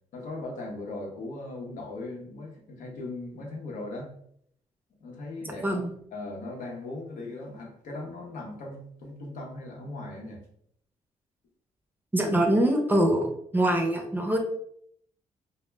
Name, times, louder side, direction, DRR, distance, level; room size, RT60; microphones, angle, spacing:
voice 1, 0.1-4.1 5.0-5.8 6.1-10.4, left 2 dB, 85° left, 0 dB, 0.8 m, -38 dB
voice 2, 12.1-14.4, right 1 dB, 15° right, 3 dB, 0.5 m, -24 dB
2.1 x 2.0 x 3.2 m, 0.67 s
cardioid pair, 100°, 13 cm